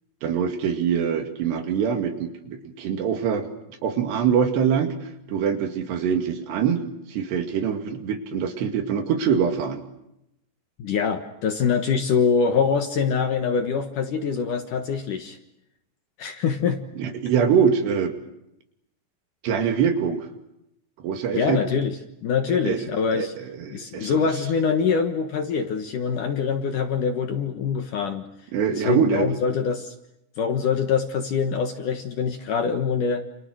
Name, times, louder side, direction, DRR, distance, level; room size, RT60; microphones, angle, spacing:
voice 1, 0.2-3.5 3.8-4.9 5.3-6.8 7.1-9.8 17.0-18.1 19.4-20.3 21.0-21.6 22.7-23.3 23.6-24.1 28.5-29.3, right 7 dB, 70° right, 6 dB, 4.3 m, -24 dB
voice 2, 10.8-15.4 16.2-16.8 21.3-23.3 23.7-28.3 28.8-29.9 30.4-33.2, left 6 dB, 60° left, 6 dB, 2.4 m, -24 dB
29.5 x 28.5 x 6.4 m, 0.83 s
omnidirectional pair, 5.1 m